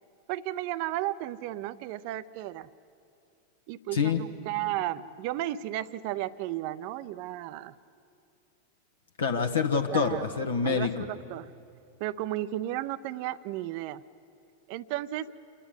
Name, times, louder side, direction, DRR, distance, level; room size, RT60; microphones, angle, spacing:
voice 1, 0.3-2.7 3.7-7.7 9.9-10.3 10.6-11.5 12.0-14.0 14.7-15.3, right 14 dB, 45° right, 16 dB, 0.5 m, -34 dB
voice 2, 9.2-10.9, left 5 dB, 70° left, 4 dB, 1.1 m, -26 dB
28.0 x 9.9 x 9.7 m, 2.5 s
figure-of-eight pair, 90°, 0 cm